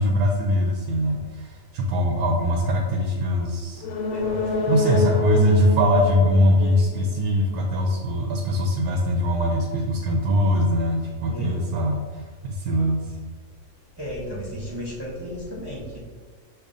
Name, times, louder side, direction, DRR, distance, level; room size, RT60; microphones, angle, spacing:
voice 1, 0.0-3.8 4.7-13.0, equal, 90° right, 0 dB, 1.1 m, -22 dB
sound 1, 3.8-7.5 7.8-7.9, left 2 dB, 80° left, 1.1 m, -26 dB
voice 2, 4.1-4.6 11.3-11.6 14.0-16.0, equal, 45° right, -7 dB, 0.3 m, -34 dB
6.6 x 2.8 x 2.4 m, 1.5 s
omnidirectional pair, 1.5 m